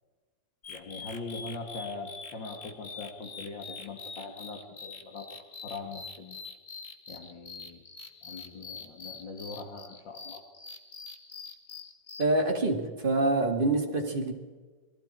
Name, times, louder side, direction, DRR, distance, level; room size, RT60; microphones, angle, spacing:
sound 1, 0.6-12.2, left 4 dB, 45° left, 1.7 m, -45 dB
voice 1, 0.7-5.3 5.6-6.4 7.1-7.8 8.2-10.4, left 3 dB, 75° left, 3 dB, 2.6 m, -41 dB
voice 2, 12.2-14.3, right 2 dB, 25° right, 1 dB, 2.6 m, -26 dB
27.5 x 21.5 x 4.5 m, 1.4 s
omnidirectional pair, 2.1 m